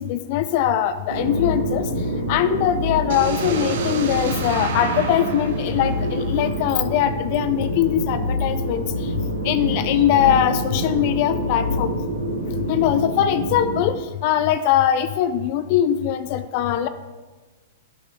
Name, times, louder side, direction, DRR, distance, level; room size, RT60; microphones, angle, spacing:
voice 1, 0.0-1.9 2.3-8.8 9.4-11.9 12.7-14.0 14.2-16.9, left 10 dB, 45° left, 11 dB, 0.6 m, -21 dB
sound 1, 1.1-13.8, equal, 80° right, 3.1 m, -26 dB
sound 2, 3.1-7.0, right 4 dB, 60° right, 1.5 m, -30 dB
11.5 x 10.5 x 3.8 m, 1.3 s
figure-of-eight pair, 105°, 0 cm